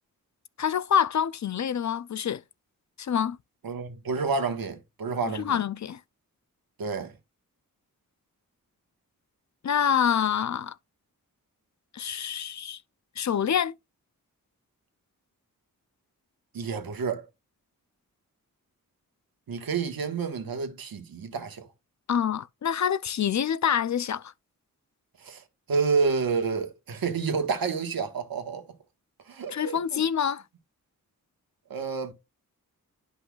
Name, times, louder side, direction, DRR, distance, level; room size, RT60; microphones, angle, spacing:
voice 1, 0.6-2.4 3.0-3.4 5.3-6.0 9.6-10.8 11.9-12.8 13.2-13.7 22.1-24.3 29.5-30.4, left 8 dB, 55° left, 0.5 m, -26 dB
voice 2, 3.6-5.6 6.8-7.1 16.5-17.2 19.5-21.7 25.2-25.4 25.7-28.7 29.3-30.0 31.7-32.1, right 5 dB, 85° right, 1.5 m, -29 dB
10.5 x 5.5 x 2.4 m
cardioid pair, 55°, 35 cm